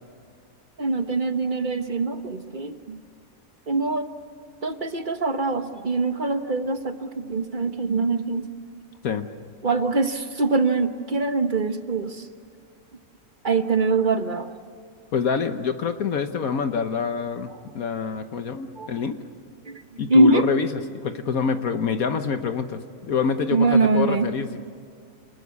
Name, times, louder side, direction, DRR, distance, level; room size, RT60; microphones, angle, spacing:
voice 1, 0.8-3.0 3.7-4.1 4.6-8.5 9.6-12.2 13.4-14.5 18.8-18.9 19.7-19.8 20.1-20.4 23.5-24.3, right 3 dB, 35° right, 8 dB, 1.2 m, -23 dB
voice 2, 15.1-19.2 20.0-22.8 23.1-24.6, left 6 dB, 65° left, 8 dB, 1.4 m, -26 dB
28.0 x 20.0 x 8.3 m, 2.2 s
omnidirectional pair, 1.7 m